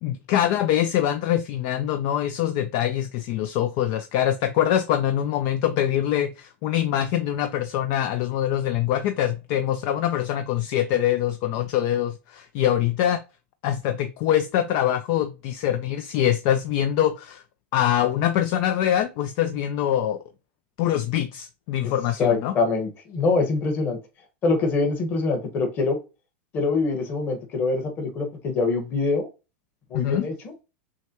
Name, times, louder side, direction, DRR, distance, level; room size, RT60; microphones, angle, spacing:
voice 1, 0.0-13.2 13.6-17.4 17.7-20.2 20.8-22.5 29.9-30.3, left 11 dB, 50° left, 0.4 m, -24 dB
voice 2, 22.2-24.0 24.4-26.0 26.5-29.3 29.9-30.5, left 3 dB, 30° left, 1.3 m, -24 dB
6.3 x 2.2 x 2.9 m
supercardioid pair, 140°, 7 cm